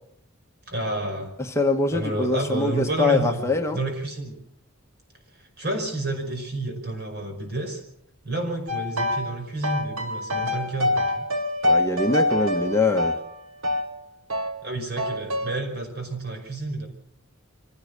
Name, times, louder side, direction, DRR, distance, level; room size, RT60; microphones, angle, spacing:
voice 1, 0.7-1.3 1.9-4.4 5.6-7.8 8.2-11.3 14.6-16.9, right 2 dB, 50° right, 4 dB, 5.2 m, -30 dB
voice 2, 1.4-3.8 11.6-13.2, left 3 dB, 15° left, 3 dB, 1.2 m, -23 dB
sound 1, 8.7-9.3 9.6-13.9 14.3-14.5 15.0-15.5, left 1 dB, 65° right, 1.7 m, -25 dB
24.5 x 16.5 x 6.6 m, 0.70 s
head